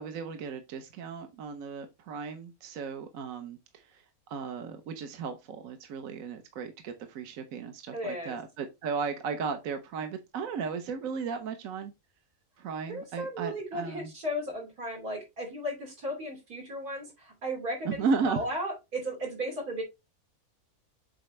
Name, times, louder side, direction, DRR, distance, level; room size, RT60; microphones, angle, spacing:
voice 1, 0.0-4.0 4.3-11.9 12.6-14.1 17.8-18.5, right 5 dB, 70° right, 7 dB, 1.2 m, -35 dB
voice 2, 7.9-8.4 12.9-19.8, equal, 90° right, 0 dB, 3.5 m, -35 dB
7.7 x 4.1 x 3.2 m, 0.22 s
omnidirectional pair, 1.6 m